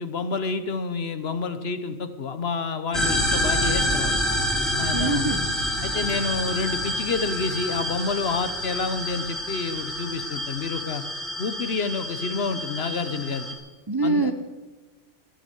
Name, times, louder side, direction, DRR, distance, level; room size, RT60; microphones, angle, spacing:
voice 1, 0.0-4.2 4.8-5.3 5.8-11.0 11.4-13.5 14.0-14.3, left 4 dB, 55° left, 11 dB, 1.2 m, -29 dB
sound 1, 2.9-13.5, equal, ahead, 2.8 m, -28 dB
voice 2, 4.9-5.5 13.9-14.3, right 3 dB, 20° right, 8 dB, 0.7 m, -24 dB
14.0 x 11.5 x 8.1 m, 1.2 s
omnidirectional pair, 1.3 m